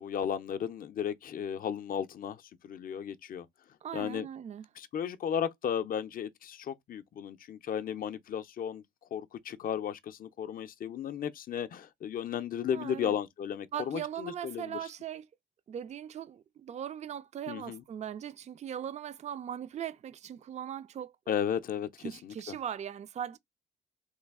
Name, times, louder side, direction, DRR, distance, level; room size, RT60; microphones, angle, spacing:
voice 1, 0.0-3.5 3.9-4.3 4.8-8.8 9.1-14.8 17.5-17.8 21.3-22.5, left 8 dB, 45° left, 0.5 m, -34 dB
voice 2, 3.8-4.6 12.7-13.1 13.7-15.3 15.7-21.1 22.0-23.4, right 9 dB, 35° right, 0.4 m, -39 dB
3.2 x 2.3 x 3.4 m
cardioid pair, 90°, 20 cm